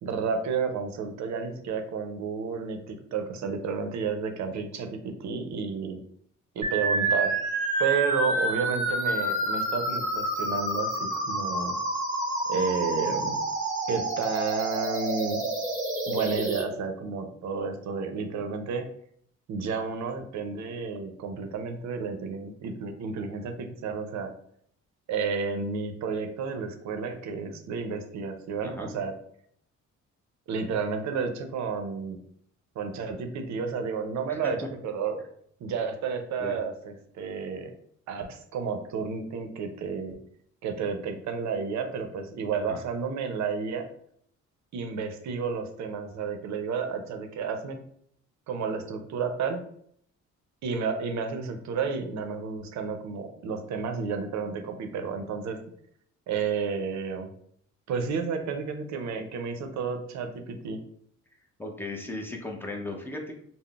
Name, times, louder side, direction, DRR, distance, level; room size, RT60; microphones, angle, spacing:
voice 1, 0.0-6.0 6.5-7.3 7.8-11.8 12.5-13.4 13.9-15.4 16.1-18.9 19.5-24.3 25.1-29.2 30.5-32.2 32.8-35.2 35.6-37.7 38.1-40.2 40.6-43.9 44.7-47.8 48.5-49.6 50.6-55.6 56.3-57.3 57.9-60.8, right 5 dB, 65° right, 6 dB, 0.5 m, -31 dB
sound 1, 6.6-16.6, right 2 dB, 25° right, 1.0 m, -28 dB
voice 2, 61.6-63.4, left 2 dB, 5° left, 1 dB, 0.5 m, -37 dB
3.6 x 2.0 x 2.3 m, 0.66 s
cardioid pair, 90°, 30 cm